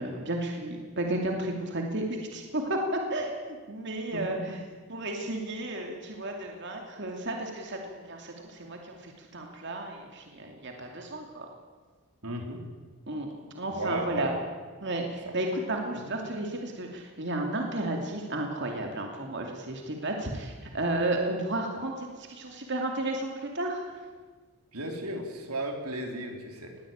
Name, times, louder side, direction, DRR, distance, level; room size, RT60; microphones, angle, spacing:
voice 1, 0.0-3.4 3.7-4.4 4.9-11.5 13.1-13.3 13.5-14.3 14.8-23.8, right 1 dB, 50° right, 2 dB, 2.7 m, -33 dB
voice 2, 4.1-4.6 12.2-12.6 13.7-14.4 15.2-15.4 15.9-16.3 24.7-26.8, right 1 dB, 80° right, 3 dB, 3.4 m, -35 dB
21.0 x 16.5 x 8.8 m, 1.4 s
head